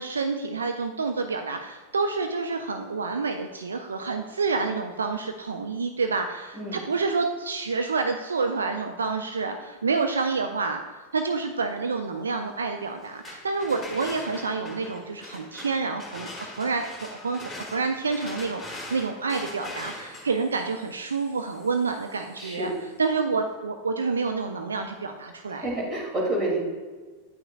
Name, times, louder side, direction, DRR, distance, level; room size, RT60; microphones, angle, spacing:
voice 1, 0.0-22.7 23.0-25.7, right 4 dB, 70° right, 6 dB, 0.4 m, -28 dB
sound 1, 13.0-22.8, left 2 dB, 5° left, 1.8 m, -42 dB
voice 2, 22.4-22.7 25.6-26.6, right 1 dB, 25° right, -2 dB, 2.1 m, -28 dB
9.2 x 5.9 x 2.3 m, 1.4 s
figure-of-eight pair, 90°, 0 cm